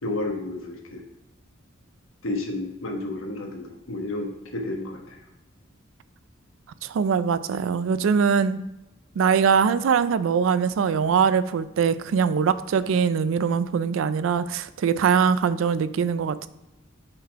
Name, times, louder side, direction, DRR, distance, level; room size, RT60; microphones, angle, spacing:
voice 1, 0.0-1.0 2.2-5.2, left 2 dB, 85° left, 2 dB, 1.1 m, -31 dB
voice 2, 6.9-8.6 9.2-16.5, right 6 dB, 70° right, 14 dB, 0.3 m, -22 dB
5.4 x 4.1 x 4.5 m, 0.94 s
head